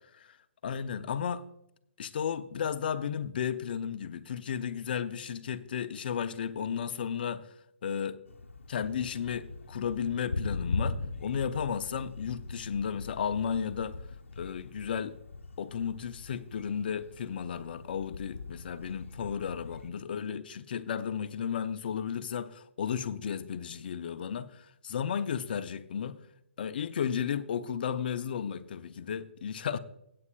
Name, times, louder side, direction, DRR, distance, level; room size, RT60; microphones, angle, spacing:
voice 1, 0.6-1.4 2.0-7.5 7.8-8.2 8.7-14.0 14.4-15.2 15.6-26.2 26.6-29.8, left 7 dB, 50° left, 0.7 m, -34 dB
Thunder, 8.3-19.9, left 3 dB, 75° left, 0.9 m, -40 dB
17.5 x 8.6 x 2.4 m
figure-of-eight pair, 135°, 7 cm